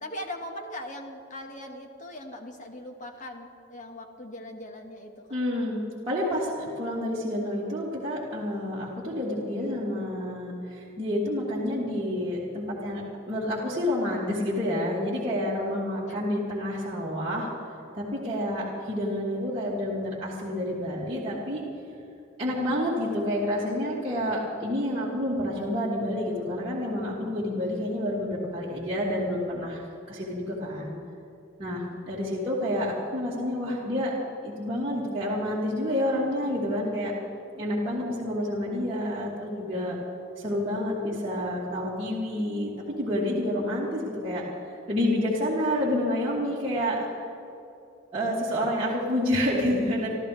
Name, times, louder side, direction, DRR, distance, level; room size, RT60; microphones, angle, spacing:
voice 1, 0.0-5.4 15.5-15.8 16.0-16.2 18.1-18.4 32.2-32.5 37.6-37.7, left 1 dB, 40° left, 3 dB, 1.6 m, -40 dB
voice 2, 5.3-17.5 17.9-21.6 22.4-30.9 31.6-34.2 34.4-37.1 37.6-40.0 40.4-44.4 44.9-47.1 48.1-50.1, left 1 dB, 30° right, -8 dB, 2.5 m, -29 dB
26.5 x 14.0 x 3.4 m, 2.6 s
head